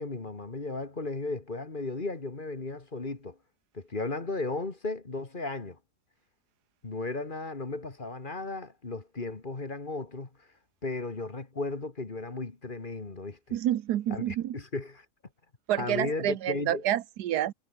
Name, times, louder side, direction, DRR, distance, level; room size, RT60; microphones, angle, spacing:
voice 1, 0.0-3.4 3.7-5.8 6.8-10.5 10.8-13.6 14.1-15.1 15.8-16.8, left 3 dB, 30° left, 2.1 m, -35 dB
voice 2, 13.5-14.6 15.7-17.5, right 12 dB, 85° right, 1.4 m, -28 dB
omnidirectional pair, 1.7 m